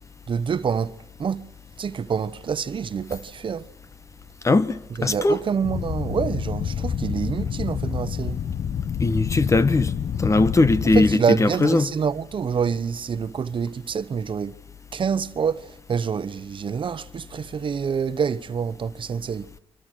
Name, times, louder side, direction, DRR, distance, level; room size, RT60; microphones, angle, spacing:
voice 1, 0.3-1.5 1.8-3.7 5.0-8.4 10.9-14.6 14.9-19.5, right 6 dB, 55° right, 1.1 m, -27 dB
voice 2, 4.4-5.4 9.0-9.9 10.2-11.9, left 2 dB, 30° left, 1.3 m, -20 dB
sound 1, 5.6-11.1, left 8 dB, 70° left, 1.1 m, -28 dB
28.0 x 24.5 x 6.4 m
cardioid pair, 95°, 10 cm